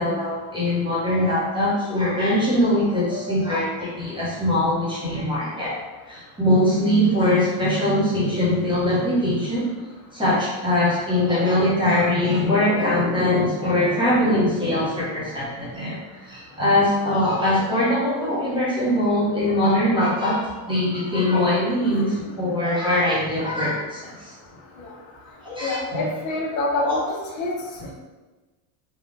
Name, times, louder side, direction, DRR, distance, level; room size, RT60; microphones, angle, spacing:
voice 1, 0.0-5.8 6.0-9.7 10.1-24.3 25.4-26.1, left 1 dB, 10° right, -8 dB, 1.0 m, -22 dB
voice 2, 21.8-22.4 24.8-24.9 25.6-27.0 27.4-27.5 27.8-27.9, left 2 dB, 40° left, -3 dB, 0.9 m, -27 dB
3.9 x 2.4 x 3.2 m, 1.2 s
cardioid pair, 165°, 47 cm